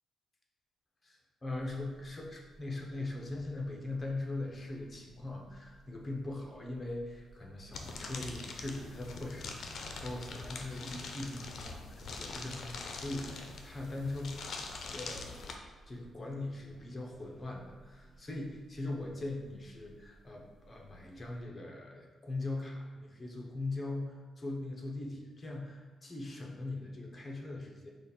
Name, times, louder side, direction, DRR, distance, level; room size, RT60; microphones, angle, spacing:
voice 1, 1.0-14.3 14.9-15.6 15.9-27.9, left 2 dB, 25° left, 0 dB, 0.9 m, -41 dB
sound 1, 1.5-21.4, right 3 dB, 70° right, 0.7 m, -61 dB
sound 2, 7.7-15.5, left 3 dB, 60° left, 0.5 m, -43 dB
5.1 x 2.5 x 4.3 m, 1.4 s
cardioid pair, 95°, 0 cm